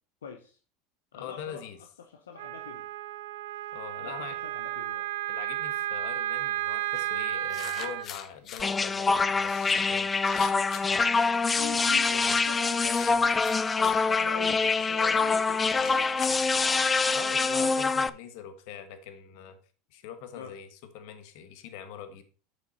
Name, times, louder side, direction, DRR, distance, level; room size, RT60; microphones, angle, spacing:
voice 1, 0.2-0.6 1.1-1.6 2.0-2.9 4.0-5.1 11.5-13.3 13.7-17.0 20.3-20.5, left 6 dB, 90° left, 5 dB, 1.0 m, -44 dB
voice 2, 1.1-1.8 3.7-4.4 5.3-10.1 12.3-12.4 17.1-19.6 19.9-22.2, left 8 dB, 65° left, 9 dB, 1.4 m, -42 dB
Wind instrument woodwind instrument, 2.4-8.1, right 13 dB, 75° right, 0.6 m, -33 dB
sound 1, 6.9-7.0 7.5-8.6 9.4-11.1 11.9-12.2 12.8-14.1 14.8-17.0, left 9 dB, 40° left, 1.0 m, -43 dB
sound 2, 8.6-18.1, left 4 dB, 20° left, 0.5 m, -25 dB
7.5 x 6.6 x 4.1 m, 0.37 s
hypercardioid pair, 90°, 0 cm